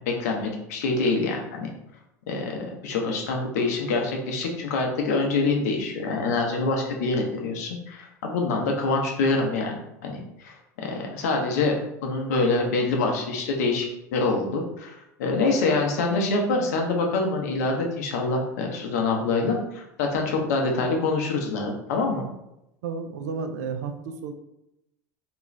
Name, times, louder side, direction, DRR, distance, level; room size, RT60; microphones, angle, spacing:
voice 1, 0.1-1.7 2.3-9.7 10.0-13.8 14.1-22.2, left 3 dB, 75° left, 1 dB, 0.7 m, -25 dB
voice 2, 22.8-24.3, right 5 dB, 75° right, 7 dB, 0.4 m, -32 dB
2.5 x 2.3 x 3.1 m, 0.86 s
hypercardioid pair, 90°, 9 cm